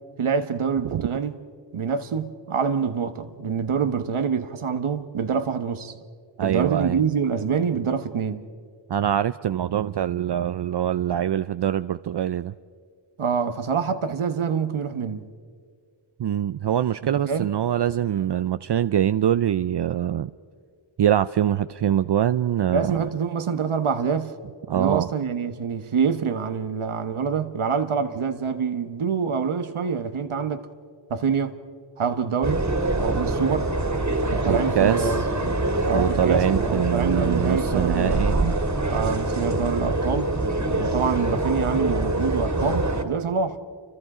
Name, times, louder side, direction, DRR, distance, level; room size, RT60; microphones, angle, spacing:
voice 1, 0.2-1.4 1.7-6.0 6.4-8.5 13.2-15.3 17.2-17.5 22.7-24.3 24.7-30.7 31.1-31.6 32.0-32.7 33.0-33.7 34.3-35.5 35.9-38.3 38.9-40.3 40.8-43.6, right 6 dB, 85° right, 1.2 m, -26 dB
voice 2, 6.4-7.0 8.9-12.5 16.2-20.3 21.0-22.9 24.7-25.1 34.5-35.3 35.9-38.6, right 10 dB, 60° right, 0.5 m, -24 dB
sound 1, 32.4-43.0, right 2 dB, 35° right, 2.5 m, -25 dB
28.5 x 24.5 x 4.9 m
cardioid pair, 55°, 48 cm